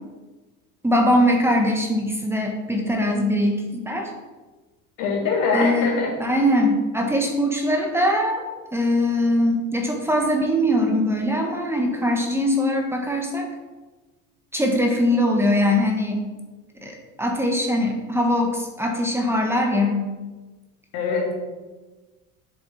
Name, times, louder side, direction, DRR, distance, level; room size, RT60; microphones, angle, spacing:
voice 1, 0.8-4.1 5.5-5.9 6.2-8.4 8.7-13.5 14.5-16.2 16.8-20.1, left 1 dB, 5° right, 1 dB, 1.3 m, -21 dB
voice 2, 5.0-6.2 20.9-21.3, left 4 dB, 75° left, -1 dB, 2.5 m, -23 dB
7.8 x 7.3 x 4.2 m, 1.2 s
supercardioid pair, 105°, 34 cm